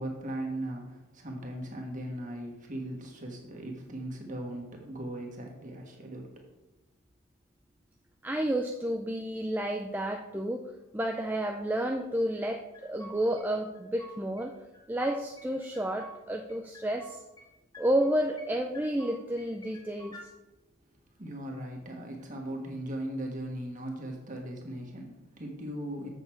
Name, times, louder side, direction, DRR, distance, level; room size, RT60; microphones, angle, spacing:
voice 1, 0.0-6.5 21.2-26.1, right 1 dB, 35° right, 1 dB, 1.5 m, -38 dB
voice 2, 8.2-10.7 10.9-14.5 14.9-17.2 17.8-20.1, right 1 dB, 10° right, 2 dB, 0.3 m, -30 dB
sound 1, 12.5-13.5 13.7-14.5 14.7-16.2 16.5-17.5 17.7-18.5 18.7-20.3, right 1 dB, 15° left, 1.2 m, -50 dB
7.8 x 6.7 x 4.5 m, 0.99 s
head